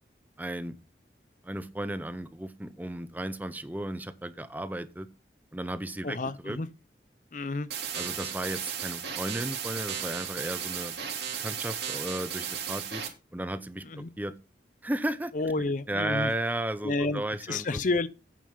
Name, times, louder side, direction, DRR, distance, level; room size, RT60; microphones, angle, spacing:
voice 1, 0.4-0.8 1.4-5.1 5.5-6.6 8.0-10.9 11.4-13.0 13.3-13.9 14.2-14.4 14.8-15.3 15.9-17.8, right 1 dB, 10° right, 0.6 m, -34 dB
voice 2, 6.0-6.7 7.3-7.7 13.9-14.1 15.3-16.3 16.8-17.2 17.5-18.1, left 3 dB, 45° left, 0.5 m, -30 dB
sound 1, 7.7-13.1, right 8 dB, 65° right, 2.9 m, -35 dB
8.9 x 6.7 x 5.2 m
head